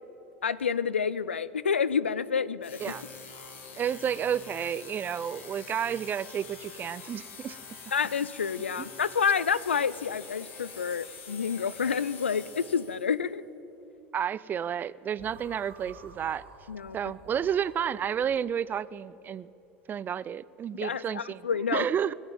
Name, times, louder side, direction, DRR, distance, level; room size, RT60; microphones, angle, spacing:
voice 1, 0.4-2.9 7.9-13.4 16.7-17.0 20.7-21.9, left 6 dB, 90° left, 18 dB, 0.4 m, -29 dB
sound 1, 2.6-13.2, left 5 dB, 70° left, 1.8 m, -46 dB
voice 2, 3.8-7.6 8.8-8.9 14.1-16.4 16.9-19.5 19.9-21.4 21.7-22.1, right 8 dB, 30° right, 19 dB, 0.4 m, -31 dB
sound 2, 15.2-18.4, right 4 dB, 90° right, 1.9 m, -51 dB
20.0 x 7.3 x 9.0 m, 3.0 s
hypercardioid pair, 80°, 6 cm